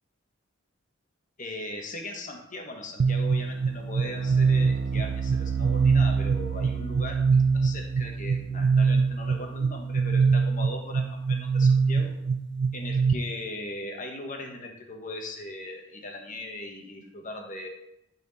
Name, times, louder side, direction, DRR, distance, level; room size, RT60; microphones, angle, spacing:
voice 1, 1.4-7.2 7.5-12.1 12.7-17.7, left 1 dB, 40° left, 2 dB, 1.3 m, -39 dB
sound 1, 3.0-13.1, right 5 dB, 60° right, 0.4 m, -24 dB
11.5 x 4.3 x 4.1 m, 0.84 s
head